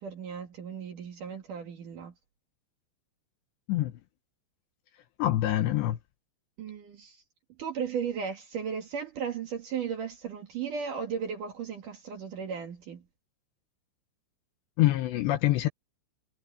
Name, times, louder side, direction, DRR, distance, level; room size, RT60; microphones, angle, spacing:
voice 1, 0.0-2.1 6.6-7.2 7.6-13.0, right 7 dB, 55° right, 2.9 m, -35 dB
voice 2, 5.2-6.0 14.8-15.7, left 15 dB, 75° left, 2.8 m, -25 dB
omnidirectional pair, 5.7 m